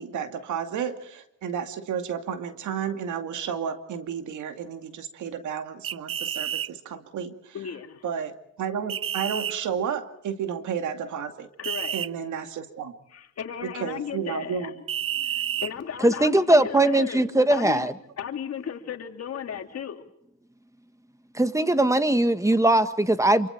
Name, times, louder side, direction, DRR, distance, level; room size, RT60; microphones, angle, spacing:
voice 1, 0.0-7.6 8.0-8.3 8.6-11.5 11.9-13.0 13.8-14.7, right 7 dB, 75° right, 7 dB, 2.4 m, -32 dB
sound 1, 5.8-6.7 8.9-9.5 11.6-12.1 14.9-15.7, right 10 dB, 45° right, 0.7 m, -29 dB
voice 2, 7.5-8.0 11.6-12.0 13.1-14.9 15.2-17.9 18.2-20.0, left 8 dB, 55° left, 5 dB, 2.7 m, -35 dB
voice 3, 16.0-17.9 21.3-23.5, right 1 dB, 10° right, 11 dB, 1.6 m, -20 dB
27.5 x 24.5 x 4.5 m, 0.77 s
cardioid pair, 90°, 30 cm